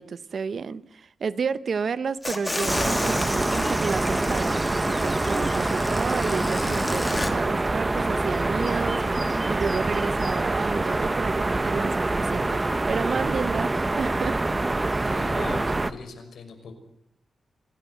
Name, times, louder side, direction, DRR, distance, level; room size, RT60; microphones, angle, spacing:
voice 1, 0.0-12.6 12.9-14.4, right 5 dB, 55° right, 15 dB, 1.0 m, -31 dB
sound 1, 2.2-7.3, left 1 dB, 15° left, 2.6 m, -31 dB
sound 2, 2.7-15.9, right 2 dB, 20° right, 1.0 m, -25 dB
voice 2, 14.9-16.7, left 4 dB, 80° left, 6 dB, 5.8 m, -40 dB
27.0 x 17.5 x 8.0 m, 0.73 s
wide cardioid pair, 130°, 0 cm